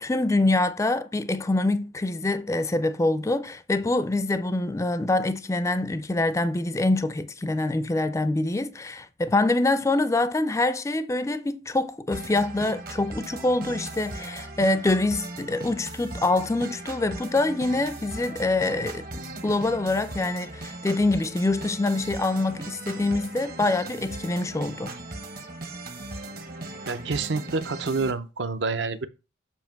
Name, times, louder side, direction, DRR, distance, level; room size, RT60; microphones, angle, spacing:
voice 1, 0.0-19.0 19.4-24.9, left 2 dB, 15° left, 0.3 m, -25 dB
sound 1, 12.1-28.1, right 2 dB, 50° right, 1.1 m, -38 dB
voice 2, 26.9-29.1, right 4 dB, 65° right, 0.6 m, -28 dB
7.2 x 2.8 x 5.7 m
head